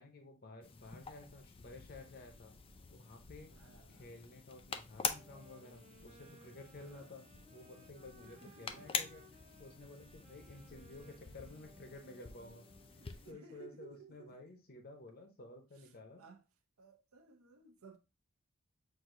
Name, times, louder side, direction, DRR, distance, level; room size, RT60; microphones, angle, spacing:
voice 1, 0.0-2.5 2.9-3.5 3.9-7.2 7.5-12.7 13.3-16.2, left 2 dB, 45° left, 0.7 m, -53 dB
sound 1, 0.6-13.3, left 6 dB, 25° left, 0.4 m, -46 dB
voice 2, 3.5-4.1 6.8-7.2 8.3-9.0 13.0-14.4 15.8-15.9 16.2-16.4 16.8-18.0, right 5 dB, 75° right, 0.7 m, -58 dB
sound 2, 5.1-13.3, right 1 dB, 30° right, 0.6 m, -62 dB
6.0 x 2.6 x 2.5 m
head